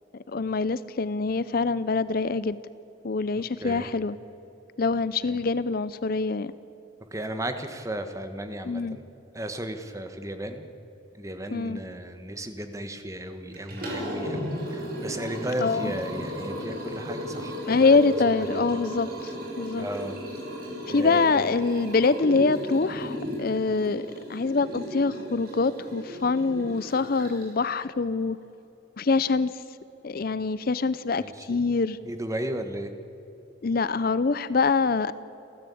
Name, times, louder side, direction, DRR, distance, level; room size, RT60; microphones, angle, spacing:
voice 1, 0.3-2.6 3.0-4.2 4.8-6.5 8.7-9.0 11.5-11.8 15.6-15.9 17.6-19.9 20.9-28.4 29.0-29.5 30.0-32.0 33.6-35.1, left 4 dB, 50° left, 16 dB, 0.5 m, -25 dB
voice 2, 3.4-3.9 5.2-5.4 7.1-9.0 9.3-10.6 11.1-18.0 18.4-18.7 19.8-20.2 20.9-21.3 31.2-31.6 32.0-32.9, right 1 dB, 15° right, 7 dB, 1.5 m, -35 dB
Liquid, 13.5-27.6, equal, 50° right, 6.4 m, -35 dB
29.0 x 13.5 x 8.5 m, 3.0 s
head